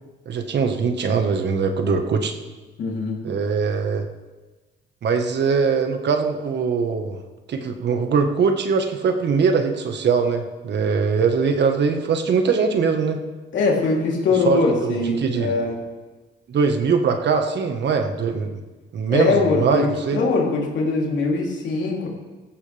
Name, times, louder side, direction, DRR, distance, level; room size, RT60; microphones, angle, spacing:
voice 1, 0.2-2.3 3.2-4.1 5.0-7.2 7.5-13.2 14.4-15.5 16.5-18.6 18.9-20.2, right 5 dB, 60° right, 5 dB, 1.6 m, -21 dB
voice 2, 2.8-3.2 13.5-15.7 19.1-22.1, left 3 dB, 70° left, -2 dB, 3.5 m, -22 dB
16.5 x 14.5 x 3.5 m, 1.2 s
cardioid pair, 90°, 20 cm